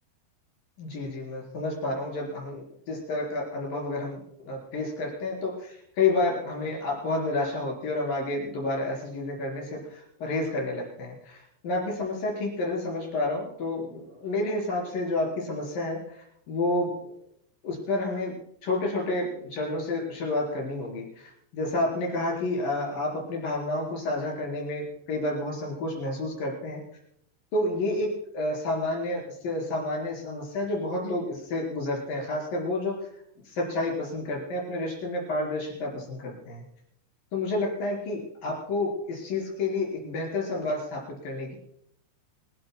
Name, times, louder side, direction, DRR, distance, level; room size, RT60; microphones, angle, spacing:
voice 1, 0.8-17.1 17.6-18.3 18.6-26.8 27.5-33.1 33.4-36.6 37.3-41.6, left 2 dB, 55° left, -1 dB, 5.9 m, -30 dB
27.0 x 15.5 x 2.2 m, 0.73 s
omnidirectional pair, 5.0 m